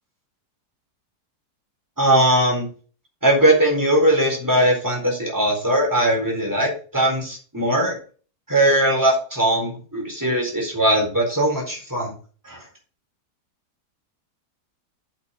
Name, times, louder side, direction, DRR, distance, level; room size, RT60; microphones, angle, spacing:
voice 1, 2.0-2.7 3.2-7.9 8.5-12.1 12.4-12.6, right 1 dB, 10° right, -1 dB, 4.2 m, -20 dB
7.9 x 6.4 x 5.5 m, 0.39 s
omnidirectional pair, 1.7 m